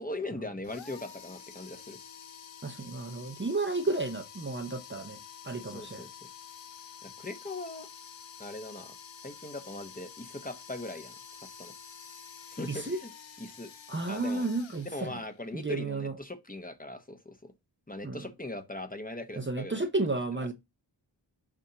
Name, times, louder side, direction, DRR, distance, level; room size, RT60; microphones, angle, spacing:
voice 1, 0.0-2.0 5.5-6.2 7.0-7.9 8.4-8.9 9.2-11.1 11.6-11.7 12.5-13.1 13.4-13.7 14.1-14.5 14.8-17.5 17.9-19.8 20.3-20.5, left 2 dB, 20° left, 1.0 m, -40 dB
sound 1, 0.6-15.5, left 7 dB, 85° left, 0.9 m, -49 dB
voice 2, 2.6-5.2 5.5-6.0 12.7-13.0 13.9-15.2 15.5-16.1 18.0-18.2 19.4-20.5, right 3 dB, 25° right, 0.7 m, -32 dB
7.1 x 2.7 x 5.7 m
wide cardioid pair, 75°, 45 cm